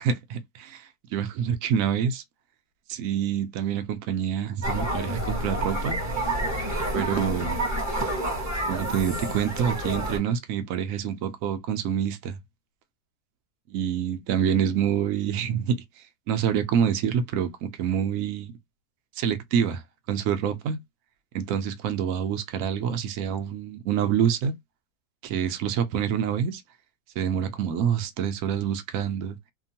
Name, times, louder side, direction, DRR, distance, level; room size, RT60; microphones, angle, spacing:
voice 1, 0.0-2.2 2.9-6.0 6.9-7.6 8.7-12.4 13.7-15.8 16.3-18.5 19.2-19.8 20.1-20.8 21.3-24.5 25.2-26.6 27.2-29.4, right 8 dB, 80° right, 0.7 m, -27 dB
sound 1, 4.6-10.2, right 1 dB, 15° right, 0.6 m, -29 dB
2.8 x 2.3 x 2.7 m
omnidirectional pair, 2.0 m